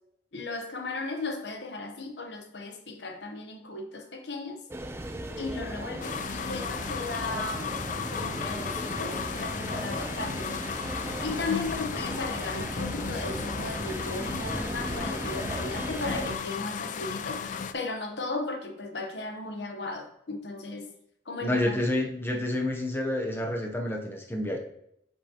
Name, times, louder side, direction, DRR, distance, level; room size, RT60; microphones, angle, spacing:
voice 1, 0.3-4.6 5.4-7.7 8.1-10.5 11.2-20.9 21.3-21.8, left 3 dB, 70° left, 5 dB, 1.0 m, -36 dB
sound 1, 4.7-16.4, right 1 dB, 15° right, 0.5 m, -36 dB
sound 2, 6.0-17.7, left 7 dB, 45° left, 0.4 m, -35 dB
voice 2, 21.4-24.6, left 1 dB, 15° left, 1 dB, 0.7 m, -29 dB
8.2 x 5.3 x 2.9 m, 0.76 s
head